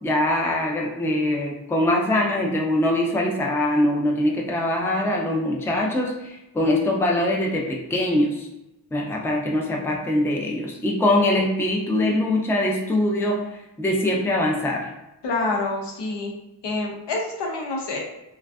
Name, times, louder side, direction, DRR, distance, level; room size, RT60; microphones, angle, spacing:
voice 1, 0.0-8.5 8.9-13.4 13.8-14.9, left 1 dB, 5° left, -1 dB, 0.4 m, -23 dB
voice 2, 15.2-16.3 16.6-18.0, left 3 dB, 75° left, 0 dB, 0.7 m, -27 dB
2.5 x 2.2 x 2.3 m, 0.92 s
cardioid pair, 65°, 43 cm